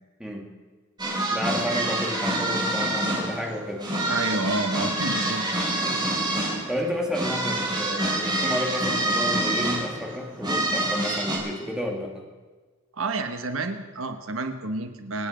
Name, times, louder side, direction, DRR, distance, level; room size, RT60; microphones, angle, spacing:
sound 1, 1.0-11.4, right 1 dB, 20° right, 3.7 m, -27 dB
voice 1, 1.3-3.9 5.8-6.1 6.4-12.2, equal, 5° right, -1 dB, 2.3 m, -31 dB
voice 2, 4.1-5.4 12.9-15.3, right 3 dB, 70° right, 7 dB, 1.3 m, -29 dB
26.5 x 9.2 x 5.2 m, 1.3 s
head